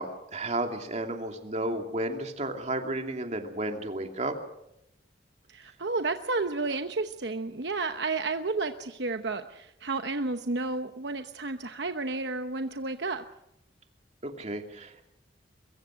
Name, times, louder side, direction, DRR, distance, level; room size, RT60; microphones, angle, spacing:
voice 1, 0.0-4.4 14.2-15.0, right 1 dB, 40° right, 4 dB, 2.7 m, -33 dB
voice 2, 5.5-13.2, right 3 dB, 70° right, 7 dB, 1.0 m, -31 dB
23.0 x 23.0 x 6.4 m, 0.84 s
head